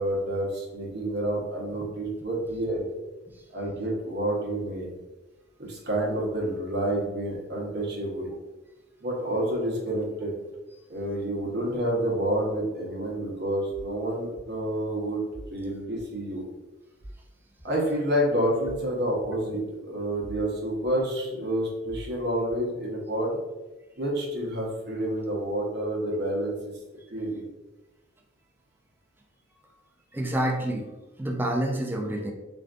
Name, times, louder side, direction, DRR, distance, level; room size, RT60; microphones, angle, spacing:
voice 1, 0.0-2.8 3.5-4.9 5.6-8.3 9.0-10.3 10.9-16.4 17.6-23.4 24.0-26.5 27.1-27.4, right 1 dB, 60° right, -3 dB, 0.9 m, -29 dB
sound 1, 13.7-13.9 14.3-14.5 15.3-15.5 16.0-16.1 17.0-17.2 17.6-17.7 18.6-18.8 19.2-19.3 20.2-20.5 20.8-20.9 21.8-22.1 22.5-22.6, right 1 dB, 60° left, 1.2 m, -43 dB
voice 2, 30.1-30.9 31.2-32.3, right 1 dB, 10° right, 1 dB, 0.3 m, -28 dB
3.4 x 2.5 x 2.4 m, 1.1 s
head